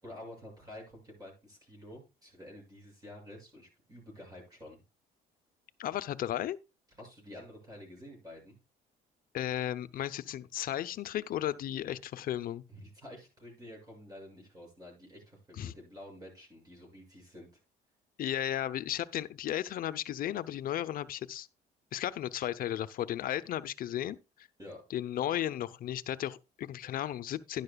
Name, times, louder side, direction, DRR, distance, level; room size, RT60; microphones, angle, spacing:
voice 1, 0.0-4.8 7.0-8.6 12.7-17.5 24.6-24.8, left 1 dB, 20° right, 6.9 m, -49 dB
voice 2, 5.8-6.6 9.3-12.6 15.6-15.7 18.2-21.5 21.9-24.2 24.9-27.6, left 11 dB, 60° left, 0.7 m, -34 dB
12.0 x 11.0 x 2.3 m
cardioid pair, 110°, 17 cm